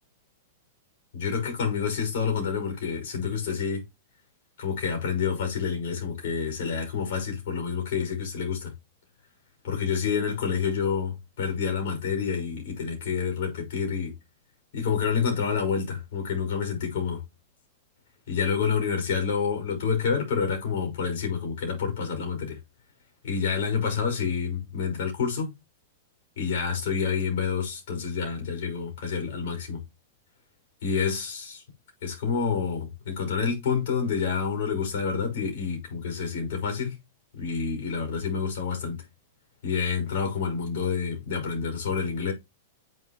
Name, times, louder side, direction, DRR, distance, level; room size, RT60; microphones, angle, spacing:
voice 1, 1.1-3.8 4.6-8.7 9.6-14.1 14.7-17.2 18.3-22.6 23.2-25.5 26.4-29.8 30.8-31.6 32.0-37.0 37.3-39.0 39.6-42.3, left 6 dB, 60° left, 6.1 m, -28 dB
8.7 x 6.9 x 3.1 m
figure-of-eight pair, 100°, 0 cm